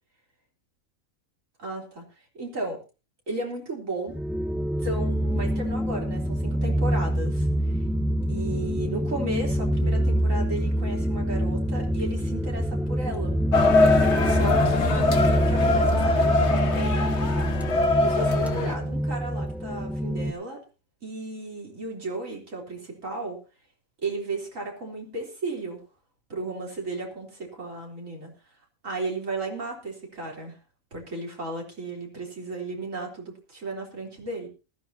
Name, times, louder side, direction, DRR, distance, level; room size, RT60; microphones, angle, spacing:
voice 1, 1.6-2.0 2.3-2.8 3.3-4.2 4.8-7.8 8.3-13.4 14.2-17.7 17.9-20.6 21.0-23.4 24.0-25.8 26.3-28.3 28.8-30.6 30.9-34.5, right 2 dB, 70° right, 0 dB, 4.2 m, -34 dB
sound 1, 4.1-20.3, equal, ahead, 1.0 m, -25 dB
sound 2, 13.5-18.7, left 3 dB, 55° left, 1.7 m, -23 dB
19.5 x 14.0 x 2.8 m, 0.31 s
omnidirectional pair, 1.4 m